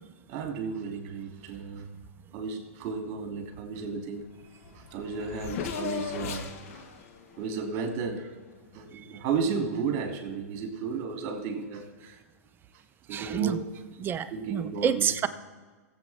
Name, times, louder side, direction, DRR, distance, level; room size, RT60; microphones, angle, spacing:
voice 1, 0.3-1.9 2.3-4.3 4.9-6.8 7.4-8.3 8.7-12.2 13.1-13.7 14.3-15.1, right 5 dB, 45° right, 2.9 m, -33 dB
Race car auto racing / Accelerating revving vroom, 4.3-4.4 4.6-8.6, left 6 dB, 65° left, 1.5 m, -38 dB
voice 2, 13.1-13.6 14.0-15.3, right 8 dB, 25° right, 0.6 m, -28 dB
20.5 x 8.1 x 3.6 m
hypercardioid pair, 120°, 8 cm